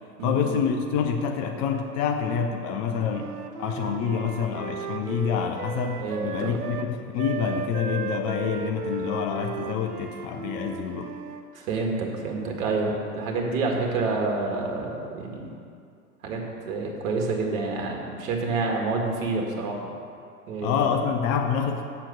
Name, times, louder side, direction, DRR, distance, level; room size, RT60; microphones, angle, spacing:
voice 1, 0.2-3.3 3.6-11.1 20.6-21.8, left 7 dB, 25° left, 4 dB, 0.4 m, -27 dB
Wind instrument woodwind instrument, 3.0-6.9 7.2-11.5, right 6 dB, 80° right, 0.7 m, -35 dB
voice 2, 6.0-6.6 11.5-15.5 16.2-19.9 20.5-20.9, right 3 dB, 60° right, 0 dB, 2.0 m, -28 dB
7.4 x 6.8 x 6.6 m, 2.4 s
figure-of-eight pair, 100°, 46 cm